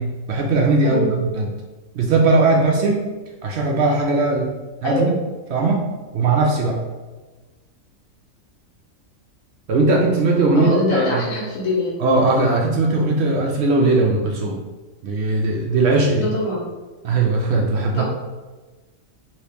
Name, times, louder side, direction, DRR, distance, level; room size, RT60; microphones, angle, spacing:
voice 1, 0.0-1.5 1.9-3.1 3.4-4.5 4.8-5.2 5.5-5.9 6.1-6.8 9.7-11.2 12.0-14.6 15.0-16.3 17.0-18.0, right 3 dB, 65° right, 0 dB, 0.7 m, -19 dB
voice 2, 0.8-1.2 4.8-5.1 10.5-11.9 16.1-16.7 17.9-18.0, left 2 dB, 80° left, -4 dB, 1.4 m, -23 dB
3.1 x 2.8 x 3.3 m, 1.3 s
omnidirectional pair, 1.4 m